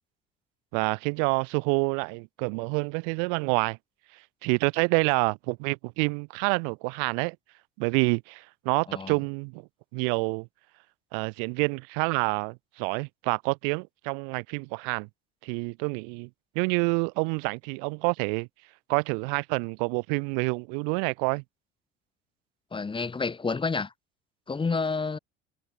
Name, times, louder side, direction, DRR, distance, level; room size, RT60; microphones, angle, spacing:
voice 1, 0.7-3.8 4.4-7.4 7.8-9.6 9.9-10.5 11.1-15.1 15.4-16.3 16.5-18.5 18.9-21.4, right 40 dB or more, 60° right, 0.9 m, -27 dB
voice 2, 22.7-23.9 24.5-25.2, left 4 dB, 15° left, 1.4 m, -29 dB
figure-of-eight pair, 60°, 30 cm